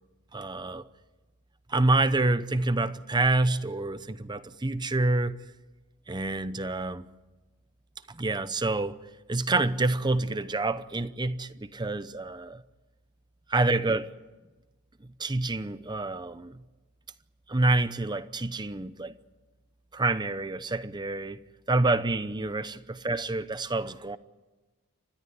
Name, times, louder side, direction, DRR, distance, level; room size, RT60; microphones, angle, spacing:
voice 1, 0.3-0.8 1.7-5.4 6.1-7.1 8.2-9.0 9.3-12.6 13.5-14.1 15.2-16.6 17.5-19.1 19.9-21.4 21.7-24.2, right 2 dB, 20° right, 0.7 m, -27 dB
30.0 x 14.0 x 9.7 m
head